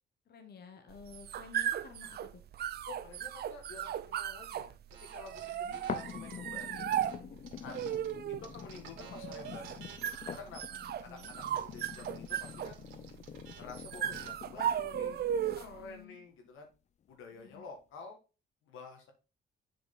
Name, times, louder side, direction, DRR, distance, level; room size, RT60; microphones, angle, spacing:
voice 1, 0.3-2.5 5.6-6.1 10.7-11.3 15.6-16.2 17.3-17.6, left 5 dB, 55° left, 6 dB, 1.2 m, -53 dB
sound 1, 0.9-15.8, right 10 dB, 55° right, 0.5 m, -37 dB
voice 2, 2.9-4.7 5.1-6.9 7.6-8.0 8.4-9.8 10.3-12.8 13.5-15.2 15.5-16.7 17.1-18.2 18.6-19.1, left 4 dB, 90° left, 4 dB, 2.0 m, -49 dB
sound 2, 4.9-8.1 8.4-14.3, right 7 dB, 90° right, 2.0 m, -54 dB
sound 3, 5.9-15.9 16.4-16.5, left 8 dB, 35° left, 0.4 m, -46 dB
7.1 x 5.2 x 3.9 m, 0.31 s
cardioid pair, 90°, 20 cm